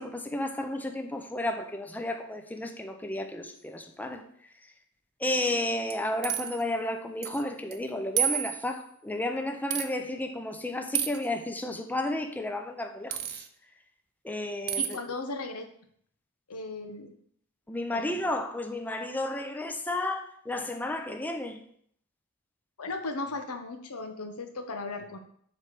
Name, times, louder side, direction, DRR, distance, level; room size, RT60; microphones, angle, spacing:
voice 1, 0.0-4.2 5.2-13.4 14.2-15.0 17.7-21.6, left 1 dB, 10° left, 5 dB, 0.5 m, -32 dB
sound 1, 5.9-6.6 7.2-7.4 7.7-7.8 8.2-8.8 9.7-9.9 10.9-11.3 13.1-13.5 14.7-15.0, right 10 dB, 50° right, 0.6 m, -30 dB
voice 2, 14.8-15.6 16.5-17.1 17.9-18.2 22.8-25.2, left 3 dB, 90° left, 6 dB, 1.0 m, -36 dB
7.5 x 3.3 x 6.0 m, 0.64 s
head